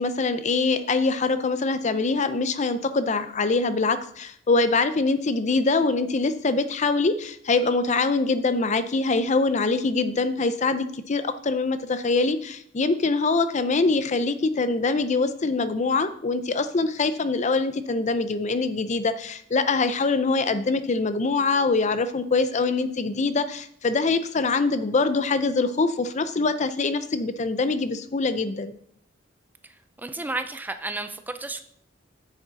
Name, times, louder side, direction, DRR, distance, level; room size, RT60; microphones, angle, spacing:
voice 1, 0.0-28.7, left 3 dB, 40° left, 12 dB, 0.5 m, -24 dB
voice 2, 30.0-31.6, right 2 dB, 10° right, 9 dB, 0.5 m, -32 dB
9.7 x 7.1 x 4.0 m, 0.65 s
head